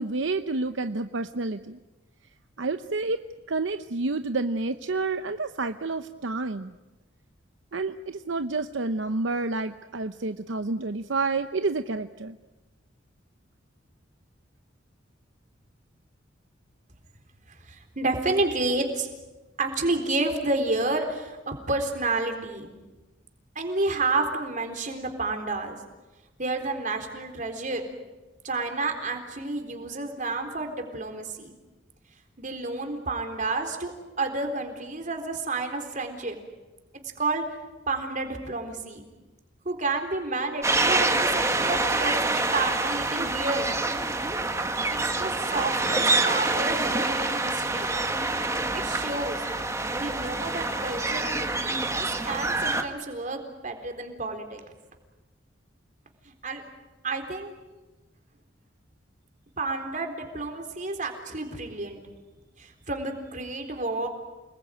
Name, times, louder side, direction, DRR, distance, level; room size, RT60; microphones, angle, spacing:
voice 1, 0.0-1.8 2.6-3.2 3.5-6.7 7.7-12.4, right 3 dB, 75° right, 9 dB, 0.8 m, -29 dB
voice 2, 17.7-19.1 19.6-22.7 23.6-25.8 26.4-27.8 28.4-31.6 32.4-36.4 37.2-37.4 37.9-39.1 39.6-43.7 44.9-48.0 48.7-49.4 49.9-54.6 56.4-56.6 57.0-57.5 59.6-62.0 62.6-64.1, right 3 dB, 40° right, 5 dB, 3.9 m, -30 dB
sound 1, 40.6-52.8, right 2 dB, 15° right, 1.7 m, -26 dB
29.0 x 20.0 x 9.2 m, 1.1 s
head